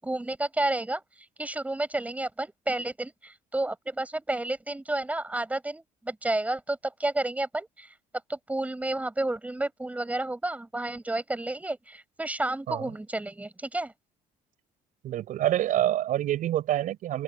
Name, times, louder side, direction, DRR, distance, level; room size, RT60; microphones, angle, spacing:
voice 1, 0.0-7.9 8.3-13.9, right 2 dB, 10° right, 6.2 m, -31 dB
voice 2, 15.0-17.2, right 12 dB, 65° right, 7.1 m, -26 dB
open air
cardioid pair, 120°, 15 cm